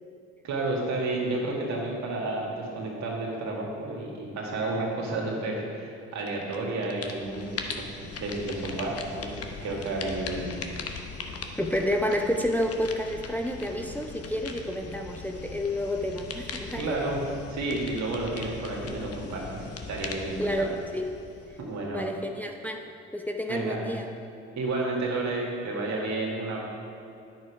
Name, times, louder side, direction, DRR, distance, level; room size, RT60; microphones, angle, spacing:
voice 1, 0.4-10.6 16.7-17.2 17.5-20.7 21.7-22.1 23.5-23.8 24.6-26.6, right 2 dB, 65° right, -2 dB, 2.0 m, -31 dB
sound 1, 6.2-6.6 6.8-21.8, left 5 dB, 50° left, 1.0 m, -40 dB
voice 2, 11.6-17.0 20.4-20.7 20.9-21.0 21.9-24.1, left 1 dB, 5° left, 3 dB, 0.7 m, -30 dB
9.5 x 6.6 x 4.8 m, 2.5 s
hypercardioid pair, 50°, 31 cm